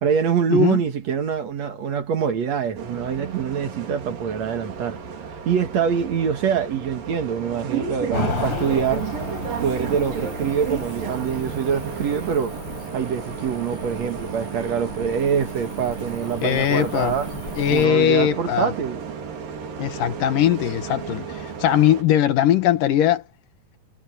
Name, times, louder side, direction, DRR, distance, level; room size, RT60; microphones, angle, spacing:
voice 1, 0.0-5.0 5.3-9.0 9.6-12.5 12.9-17.3 17.7-19.1, right 7 dB, 55° right, 2.5 m, -24 dB
Bus, 2.8-22.0, right 7 dB, 85° right, 4.8 m, -33 dB
Cricket / Motor vehicle (road), 8.1-17.9, left 4 dB, 40° left, 4.8 m, -35 dB
voice 2, 16.4-17.1 17.6-18.7 19.8-23.2, left 11 dB, 75° left, 2.9 m, -20 dB
omnidirectional pair, 3.9 m